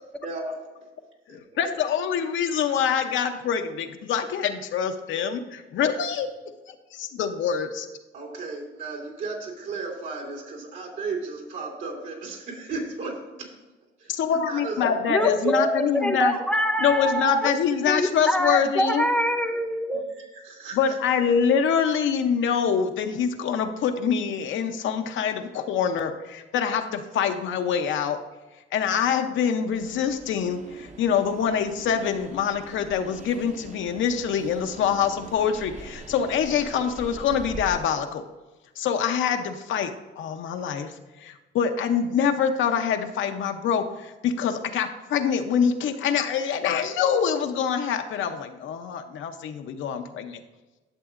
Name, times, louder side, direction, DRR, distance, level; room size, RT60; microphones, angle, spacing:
voice 1, 0.2-0.9 1.3-1.4 8.1-13.5 14.0-14.9 15.4-15.6 20.2-21.0, right 3 dB, 75° right, 0 dB, 2.8 m, -35 dB
voice 2, 1.3-6.3 6.7-7.9 14.1-16.4 16.8-19.1 20.7-28.2 28.7-38.2 38.8-40.9 41.2-50.4, left 7 dB, 75° left, 6 dB, 0.7 m, -25 dB
voice 3, 15.1-17.5 17.9-20.1, equal, 5° left, 5 dB, 0.6 m, -24 dB
Train, 29.7-37.8, right 2 dB, 40° right, 0.9 m, -43 dB
11.5 x 7.0 x 2.5 m, 1.2 s
cardioid pair, 90°, 20 cm